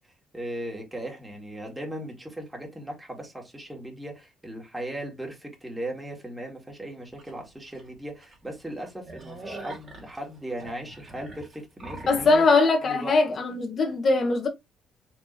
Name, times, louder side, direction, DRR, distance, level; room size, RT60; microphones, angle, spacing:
voice 1, 0.3-12.5 12.8-13.2, right 1 dB, 10° right, 2.2 m, -37 dB
sound 1, 7.2-7.3 7.8-7.9 8.2-8.3 8.7-12.5, right 2 dB, 45° right, 2.3 m, -43 dB
voice 2, 12.1-14.5, left 3 dB, 50° left, 1.5 m, -21 dB
4.7 x 3.4 x 2.8 m
cardioid pair, 90°, 0 cm